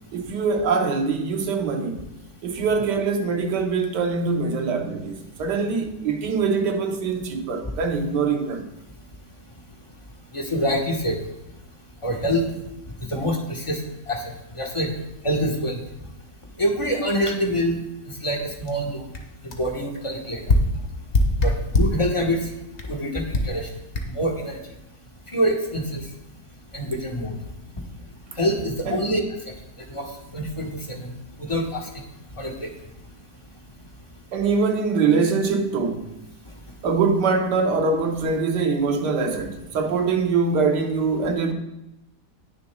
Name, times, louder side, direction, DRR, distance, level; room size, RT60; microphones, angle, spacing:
voice 1, 0.1-2.1 2.4-8.7 28.8-29.1 34.3-36.1 36.8-41.5, right 4 dB, 85° right, 1.6 m, -23 dB
voice 2, 10.3-11.2 12.0-12.5 13.1-13.8 14.1-14.2 14.5-14.9 15.2-15.8 16.6-17.8 18.2-19.1 19.4-20.5 21.4-22.4 22.9-23.7 24.1-24.6 25.3-26.0 26.7-27.4 28.4-29.2 29.9-30.1 30.3-31.1 31.4-32.0 32.4-32.7, equal, 20° left, 1.2 m, -25 dB
sound 1, 18.7-18.8 19.1-19.2 19.5-19.7 20.5-22.0 22.8-22.9 23.3-23.6 23.9-24.0, left 1 dB, 45° left, 1.3 m, -21 dB
19.5 x 6.8 x 2.3 m
omnidirectional pair, 1.8 m